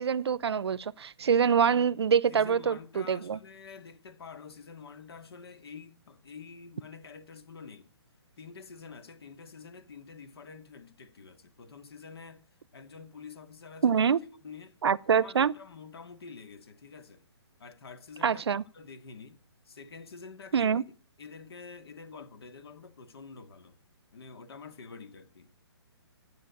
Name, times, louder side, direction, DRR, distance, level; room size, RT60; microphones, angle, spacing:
voice 1, 0.0-3.4 13.8-14.2 14.8-15.5 18.2-18.6 20.5-20.8, right 7 dB, 70° right, 0.7 m, -25 dB
voice 2, 2.3-7.9 8.4-14.1 14.4-14.8 15.1-17.2 17.6-20.8 21.2-23.8 24.1-25.5, left 5 dB, 65° left, 2.2 m, -48 dB
13.5 x 9.2 x 8.3 m
hypercardioid pair, 165°, 14 cm